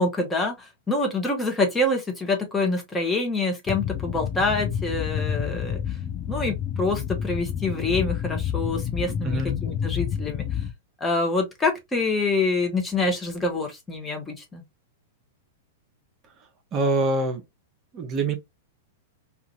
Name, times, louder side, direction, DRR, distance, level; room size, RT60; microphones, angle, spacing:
voice 1, 0.0-5.8 6.3-10.4 11.0-14.6, left 2 dB, 15° left, 0.9 m, -26 dB
sound 1, 3.7-10.7, left 9 dB, 30° left, 0.6 m, -29 dB
voice 2, 9.2-9.6 16.7-17.4 17.9-18.4, right 2 dB, 35° right, 0.7 m, -24 dB
2.8 x 2.4 x 2.5 m
hypercardioid pair, 115°, 0 cm